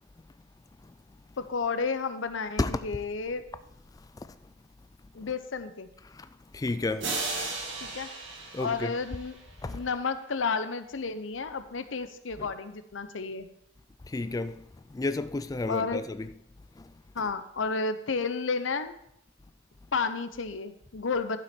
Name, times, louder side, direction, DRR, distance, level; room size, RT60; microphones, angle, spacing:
voice 1, 1.4-3.4 5.1-5.9 7.8-8.1 8.6-9.3 9.6-13.5 15.7-16.0 17.1-18.9 19.9-21.4, left 4 dB, 90° left, 0.7 m, -31 dB
voice 2, 6.5-7.5 8.5-8.9 9.6-9.8 12.4-12.5 14.1-14.6 14.9-16.3 16.8-16.9, left 2 dB, 20° left, 0.3 m, -32 dB
sound 1, 7.0-9.7, right 3 dB, 70° right, 2.0 m, -35 dB
11.5 x 6.1 x 4.4 m
head